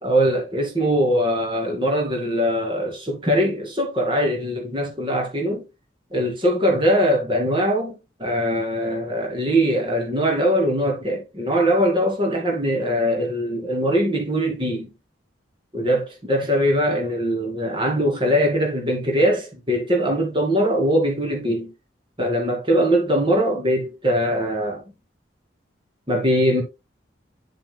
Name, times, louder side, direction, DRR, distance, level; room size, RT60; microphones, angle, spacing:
voice 1, 0.0-5.7 6.1-14.9 15.7-21.7 22.2-24.8 26.1-26.6, equal, 25° right, 2.4 m, -21 dB
10.0 x 7.4 x 2.2 m
head